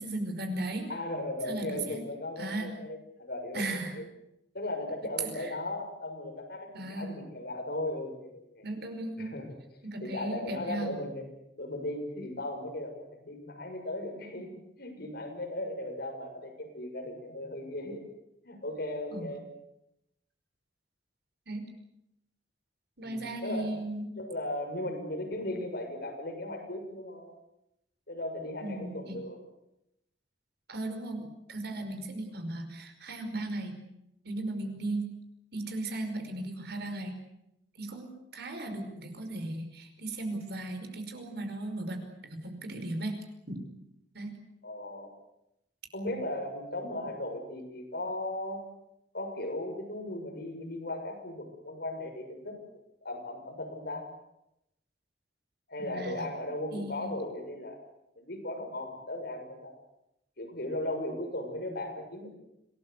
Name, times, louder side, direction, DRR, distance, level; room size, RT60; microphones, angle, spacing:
voice 1, 0.0-0.9 1.5-2.0 2.4-2.7 3.5-4.0 5.4-5.5 6.7-7.2 8.6-9.4 9.8-11.0 19.1-19.3 21.5-21.7 23.0-24.1 28.6-29.2 30.7-33.8 34.3-35.1 35.5-37.2 37.8-43.2 43.5-43.7 44.1-44.3 55.8-56.3 56.7-57.1, right 2 dB, 65° right, 6 dB, 5.2 m, -36 dB
voice 2, 0.9-4.0 4.5-8.7 9.2-9.6 10.0-11.2 11.6-18.0 18.4-19.4 23.0-23.8 24.2-27.3 28.1-29.4 38.5-38.8 44.6-45.1 45.9-48.6 49.1-52.5 53.0-54.1 55.7-57.8 58.2-59.7 60.4-62.3, left 1 dB, 60° left, 3 dB, 6.8 m, -37 dB
26.5 x 19.5 x 8.2 m, 0.83 s
head